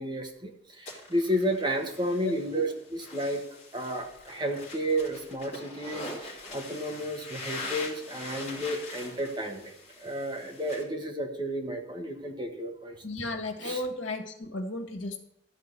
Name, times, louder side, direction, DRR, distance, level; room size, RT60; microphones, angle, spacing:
voice 1, 0.0-3.4 3.7-9.7 10.0-13.0 13.6-13.8, equal, 25° right, 3 dB, 1.3 m, -32 dB
sound 1, 0.9-10.8, left 2 dB, 35° left, 2.8 m, -43 dB
voice 2, 13.0-15.2, left 2 dB, 90° left, 6 dB, 1.6 m, -34 dB
13.0 x 4.8 x 8.1 m, 0.75 s
head